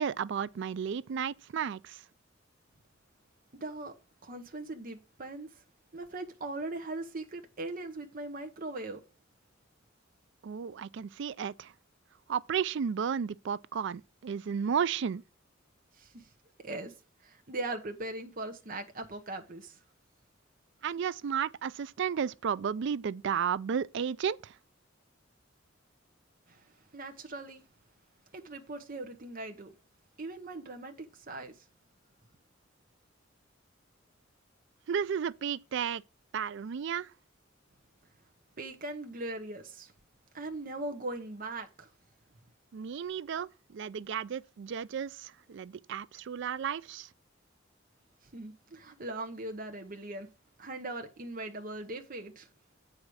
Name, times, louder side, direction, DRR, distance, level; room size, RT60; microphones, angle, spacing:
voice 1, 0.0-2.0 10.4-11.7 12.3-15.2 20.8-24.5 34.9-36.0 36.3-37.1 42.7-47.1, right 7 dB, 65° right, 0.4 m, -33 dB
voice 2, 3.6-3.9 4.2-5.5 5.9-9.0 16.0-16.3 16.6-16.9 17.2-19.8 26.5-26.6 26.9-27.6 28.3-29.7 30.2-31.5 38.6-39.9 40.3-41.9 48.3-50.3 50.6-52.5, right 2 dB, 45° right, 1.0 m, -40 dB
8.3 x 4.9 x 6.2 m
head